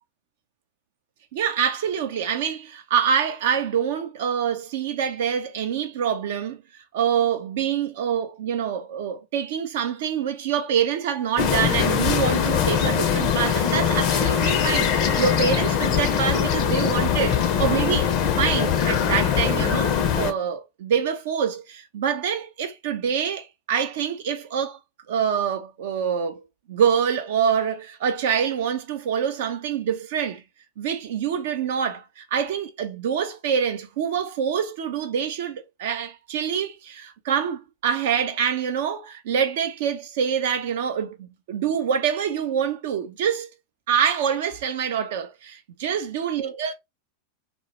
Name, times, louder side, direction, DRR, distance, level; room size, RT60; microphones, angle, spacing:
voice 1, 1.3-6.6 6.9-24.8 25.1-26.4 26.7-30.4 30.8-43.5 43.9-46.7, right 7 dB, 55° right, 0.4 m, -26 dB
sound 1, 11.4-20.3, left 8 dB, 40° left, 0.5 m, -22 dB
2.2 x 2.0 x 2.9 m
figure-of-eight pair, 90°, 0 cm